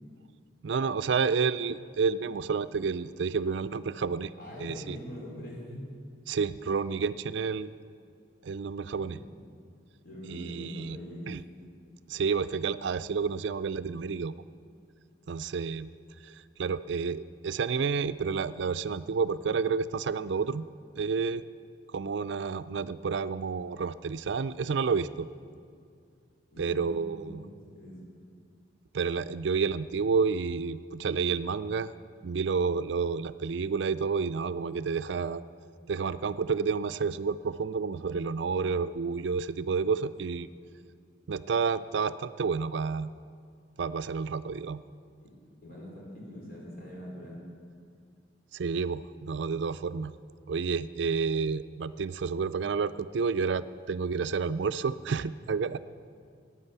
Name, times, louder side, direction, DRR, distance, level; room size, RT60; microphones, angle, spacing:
voice 1, 0.6-4.3 4.6-5.0 6.3-7.7 8.4-9.2 10.3-11.0 11.3-11.4 12.1-14.3 15.3-15.9 16.2-20.7 21.0-21.4 21.9-25.3 26.6-27.4 28.9-31.9 32.2-35.4 35.9-40.5 41.3-43.1 43.8-44.8 48.5-50.1 50.5-55.8, right 5 dB, 70° right, 14 dB, 0.4 m, -30 dB
voice 2, 4.4-5.9 8.9-9.2 10.0-11.3 26.5-27.5 27.7-28.0 45.6-47.4, equal, 50° left, -4 dB, 5.1 m, -43 dB
15.5 x 9.8 x 8.1 m, 2.2 s
head